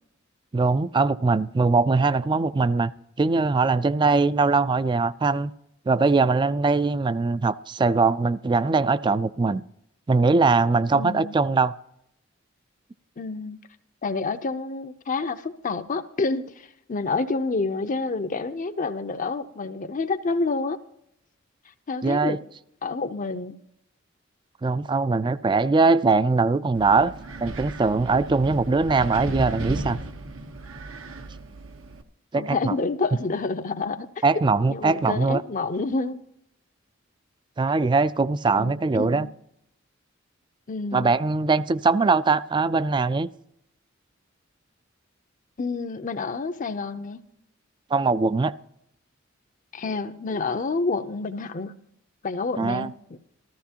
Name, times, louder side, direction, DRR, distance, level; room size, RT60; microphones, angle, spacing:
voice 1, 0.5-2.9 3.2-5.5 5.9-9.6 10.1-11.7 22.0-22.4 24.6-27.1 27.4-30.0 32.3-32.8 34.2-35.4 37.6-39.3 40.9-43.3 47.9-48.5 52.6-52.9, right 4 dB, 25° right, 0.3 m, -21 dB
voice 2, 10.9-11.4 13.2-13.6 14.0-20.8 21.9-22.4 22.8-23.6 32.3-34.2 34.7-36.2 38.6-39.3 40.7-41.1 45.6-47.2 49.7-51.7 52.2-53.2, left 3 dB, 40° left, 0.6 m, -28 dB
Wind, 26.7-32.0, right 2 dB, 85° right, 1.0 m, -35 dB
14.5 x 14.0 x 2.8 m
head